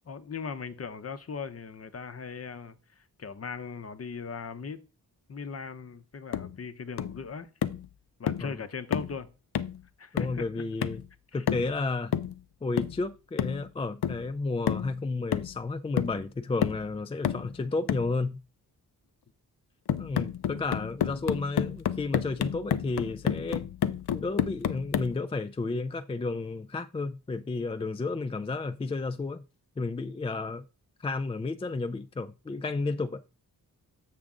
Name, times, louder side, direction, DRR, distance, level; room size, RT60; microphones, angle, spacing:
voice 1, 0.1-4.8 5.3-7.5 8.2-9.3 10.0-10.4 11.3-11.4, left 5 dB, 40° left, 0.7 m, -39 dB
sound 1, 6.3-6.5 7.0-7.2 7.6-7.9 8.3-8.5 8.9-9.2 9.5-9.8 10.2-10.4 10.8-11.1 11.5-11.8 12.1-12.4 12.8-13.0 13.4-13.6 14.0-14.3 14.7-14.9 15.3-15.7 16.0-16.2 16.6-16.9 17.2-17.5 17.9-18.1 19.9-25.2, left 10 dB, 80° left, 0.6 m, -30 dB
voice 2, 10.1-11.0 11.3-12.2 12.6-18.4 20.0-23.7 24.1-29.4 29.8-30.6 31.0-33.2, left 3 dB, 15° left, 0.3 m, -32 dB
7.2 x 6.4 x 3.7 m
wide cardioid pair, 95°, 37 cm